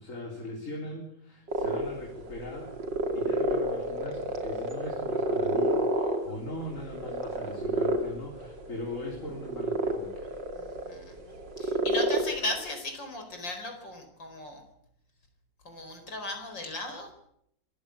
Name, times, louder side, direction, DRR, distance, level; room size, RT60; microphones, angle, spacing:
voice 1, 0.0-2.7 3.1-10.4, left 1 dB, 40° left, 0 dB, 4.0 m, -40 dB
sound 1, 1.5-12.6, right 1 dB, 65° right, 3.4 m, -30 dB
voice 2, 10.5-14.6 15.7-17.1, left 2 dB, 70° left, 5 dB, 5.3 m, -37 dB
25.0 x 15.5 x 8.6 m, 0.72 s
omnidirectional pair, 2.1 m